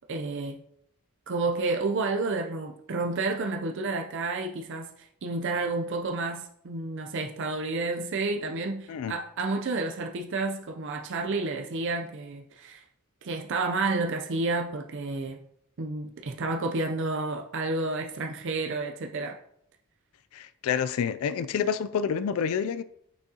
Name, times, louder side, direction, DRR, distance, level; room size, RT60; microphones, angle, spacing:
voice 1, 0.1-0.6 1.3-12.8 13.2-15.4 15.8-19.4, right 3 dB, 55° right, 0.5 m, -30 dB
voice 2, 20.3-22.8, left 7 dB, 70° left, 0.3 m, -28 dB
6.2 x 6.0 x 2.8 m
head